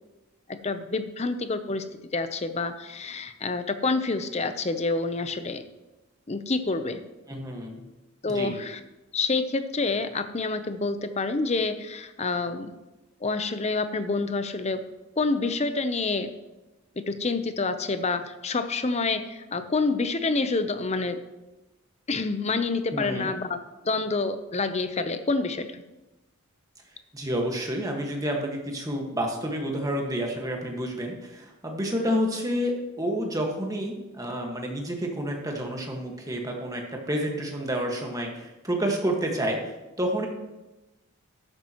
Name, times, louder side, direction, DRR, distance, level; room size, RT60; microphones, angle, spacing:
voice 1, 0.5-1.9 2.1-5.6 6.3-7.0 8.2-8.8 9.1-12.7 13.2-14.8 15.2-16.3 17.0-21.2 22.1-23.6 23.8-25.8, left 3 dB, 30° left, 10 dB, 0.7 m, -27 dB
voice 2, 7.3-7.8 8.3-8.6 22.9-23.3 27.1-39.6 40.0-40.3, equal, 15° right, 1 dB, 1.6 m, -29 dB
13.0 x 10.5 x 3.0 m, 1.0 s
head